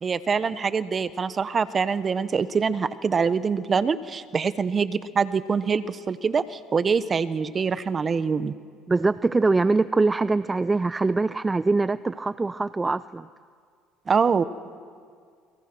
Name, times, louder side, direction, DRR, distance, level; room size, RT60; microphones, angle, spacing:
voice 1, 0.0-8.5 14.1-14.4, right 5 dB, 35° right, 14 dB, 1.2 m, -24 dB
voice 2, 8.9-13.3, right 3 dB, 20° right, 15 dB, 0.6 m, -23 dB
28.5 x 22.5 x 6.3 m, 2.1 s
supercardioid pair, 75°, 0 cm